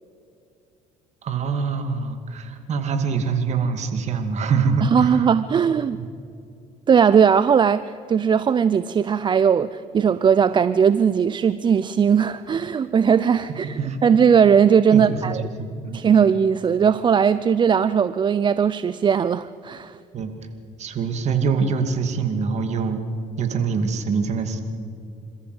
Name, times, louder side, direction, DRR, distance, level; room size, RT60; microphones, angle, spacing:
voice 1, 1.2-5.3 5.9-6.1 13.8-14.0 14.9-16.0 20.1-20.3 20.8-23.0 23.4-24.6, right 5 dB, 50° right, 7 dB, 2.4 m, -24 dB
voice 2, 4.8-6.0 6.9-15.4 15.9-20.0, right 7 dB, 30° right, 15 dB, 0.5 m, -18 dB
27.0 x 14.0 x 8.0 m, 2.6 s
cardioid pair, 100°, 15 cm